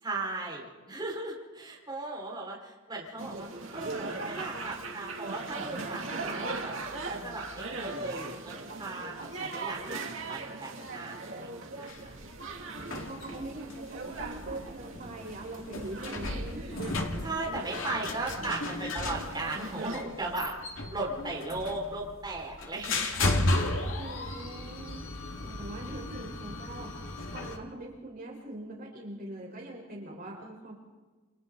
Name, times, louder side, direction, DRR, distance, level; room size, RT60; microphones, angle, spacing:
voice 1, 0.0-3.5 3.7-10.0 10.3-11.5 11.8-12.1 17.2-20.5 20.9-23.3, right 2 dB, 20° right, -4 dB, 5.5 m, -37 dB
sound 1, 3.2-20.0, right 3 dB, 65° right, 2.7 m, -39 dB
sound 2, 11.9-27.6, left 2 dB, 70° left, 2.4 m, -35 dB
voice 2, 12.6-17.0 18.4-18.7 23.9-30.7, right 1 dB, 45° right, -2 dB, 4.7 m, -43 dB
29.5 x 27.0 x 4.1 m, 1.3 s
head